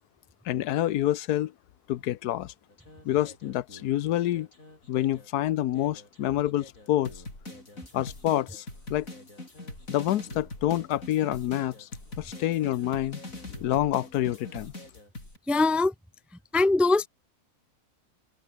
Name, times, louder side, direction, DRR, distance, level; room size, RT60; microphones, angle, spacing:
voice 1, 0.4-1.5 1.9-2.5 3.0-4.5 4.9-7.1 7.9-8.6 8.9-9.1 9.9-11.9 12.2-13.2 13.6-14.7, left 13 dB, 85° left, 1.3 m, -27 dB
sound 1, 2.7-5.3 5.7-15.4, left 2 dB, 60° left, 7.9 m, -44 dB
voice 2, 15.5-15.9 16.5-17.1, left 3 dB, ahead, 0.5 m, -21 dB
open air
omnidirectional pair, 1.6 m